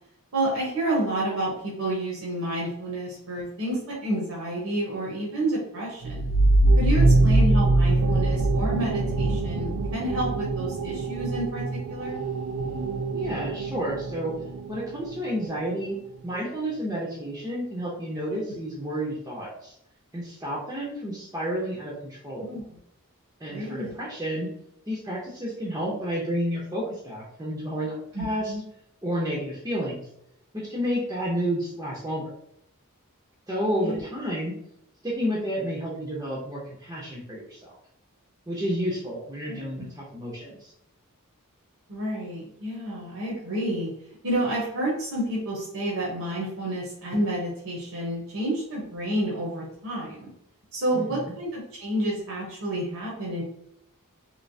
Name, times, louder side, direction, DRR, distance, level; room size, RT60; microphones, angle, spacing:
voice 1, 0.3-6.3 6.8-12.2 22.4-22.8 23.5-23.9 28.1-28.6 33.8-34.0 39.5-39.9 41.9-43.9 44.2-50.3 50.7-53.4, right 1 dB, 60° right, -5 dB, 0.9 m, -30 dB
sound 1, 6.0-15.4, right 2 dB, 85° right, 0.4 m, -23 dB
voice 2, 13.1-14.3 14.7-16.0 16.2-19.7 20.1-22.5 23.4-24.5 24.9-28.5 29.0-30.1 30.5-32.2 33.5-34.5 35.0-37.8 38.5-40.7 50.9-51.3, equal, 15° right, -5 dB, 0.6 m, -30 dB
3.2 x 2.8 x 2.6 m, 0.75 s
head